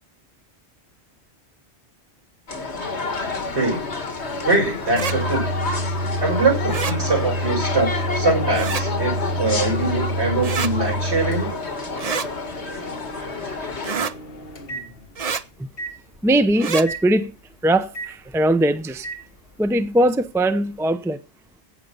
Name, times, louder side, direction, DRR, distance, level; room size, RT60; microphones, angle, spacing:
sound 1, 2.5-13.9, left 4 dB, 80° left, 2.1 m, -29 dB
Microwave oven, 2.8-15.3 15.8-15.9 16.9-17.0 17.9-18.1 19.0-19.2, right 1 dB, 60° left, 2.0 m, -29 dB
voice 1, 4.4-5.5 6.2-7.9 8.1-11.5, right 3 dB, 70° right, 6.1 m, -22 dB
sound 2, 4.9-5.2 6.7-7.0 8.5-8.8 10.4-10.7 12.0-12.3 13.8-14.1 15.2-15.4 16.5-16.9, right 6 dB, 40° right, 0.7 m, -27 dB
voice 2, 16.2-17.3 17.6-19.1 19.6-21.2, right 1 dB, 5° right, 0.6 m, -20 dB
16.0 x 6.7 x 5.5 m
omnidirectional pair, 1.1 m